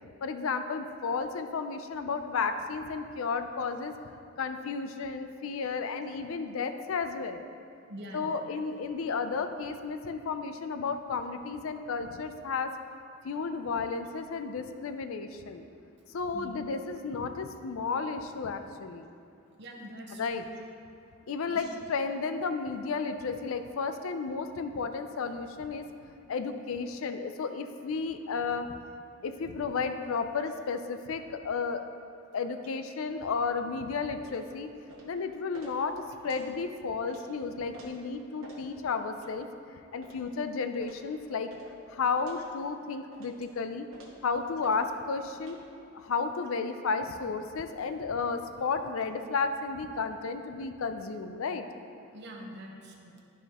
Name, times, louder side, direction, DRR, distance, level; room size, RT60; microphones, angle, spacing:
voice 1, 0.2-4.0 4.4-7.4 8.1-12.7 13.2-15.6 16.1-19.1 20.2-20.4 21.3-25.9 26.3-28.8 29.2-31.9 32.3-34.7 35.0-41.5 41.9-43.9 44.2-45.6 45.9-51.7, left 4 dB, 70° left, 8 dB, 0.4 m, -33 dB
voice 2, 7.9-8.6 9.0-9.1 16.3-16.6 18.0-18.1 19.6-20.5 21.5-21.8 42.9-43.0 46.4-46.5 52.1-53.2, equal, 55° right, 0 dB, 1.0 m, -45 dB
sound 1, 34.2-34.4 34.9-35.1 35.5-35.7 36.2-36.4 37.1-37.2 37.7-37.9 38.4-38.6 39.1-39.3 40.0-40.2 40.8-41.0 41.5-41.7 42.2-42.4 43.1-43.4 43.9-44.2 44.6-44.8 45.4-45.6, right 2 dB, 75° right, 1.2 m, -50 dB
12.0 x 4.9 x 2.9 m, 2.5 s
head